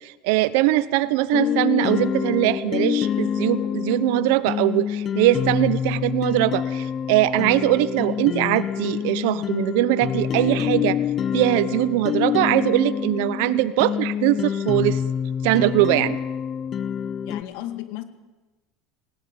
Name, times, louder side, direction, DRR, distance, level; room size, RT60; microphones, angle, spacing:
voice 1, 0.0-11.0 11.3-15.0 15.4-16.2, right 16 dB, 75° right, 15 dB, 1.0 m, -21 dB
sound 1, 1.3-17.4, left 8 dB, 35° left, 0.8 m, -26 dB
voice 2, 17.2-18.0, left 14 dB, 75° left, 10 dB, 2.1 m, -34 dB
19.5 x 18.0 x 8.9 m, 1.1 s
supercardioid pair, 130°, 0 cm